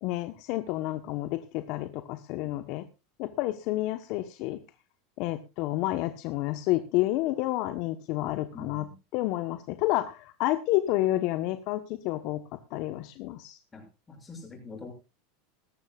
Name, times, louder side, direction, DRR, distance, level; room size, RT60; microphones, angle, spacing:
voice 1, 0.0-2.9 3.2-4.6 5.2-8.9 9.1-13.6, left 16 dB, 55° left, 11 dB, 1.0 m, -30 dB
voice 2, 8.5-8.9 13.7-14.9, left 3 dB, 20° left, 3 dB, 6.7 m, -44 dB
19.0 x 14.0 x 2.4 m, 0.28 s
hypercardioid pair, 90°, 0 cm